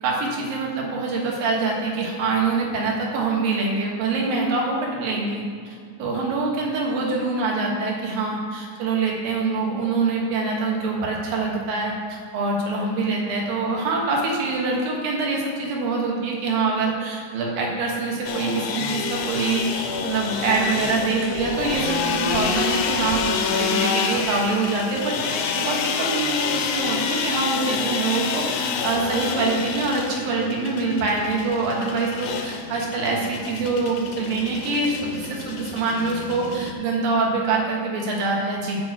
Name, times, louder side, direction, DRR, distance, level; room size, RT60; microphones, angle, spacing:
voice 1, 0.0-38.8, right 3 dB, 90° right, -1 dB, 3.2 m, -25 dB
sound 1, 18.2-36.7, left 6 dB, 85° left, 1.4 m, -28 dB
9.0 x 5.2 x 7.3 m, 2.1 s
omnidirectional pair, 3.9 m